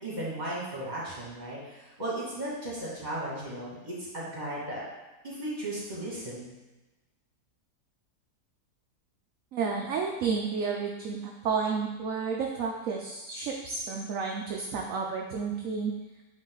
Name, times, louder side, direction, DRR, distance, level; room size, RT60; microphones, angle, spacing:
voice 1, 0.0-4.8 5.2-6.5, right 1 dB, 25° right, -7 dB, 2.4 m, -36 dB
voice 2, 9.5-15.9, right 5 dB, 65° right, 0 dB, 1.0 m, -31 dB
8.5 x 3.6 x 3.9 m, 1.1 s
omnidirectional pair, 1.7 m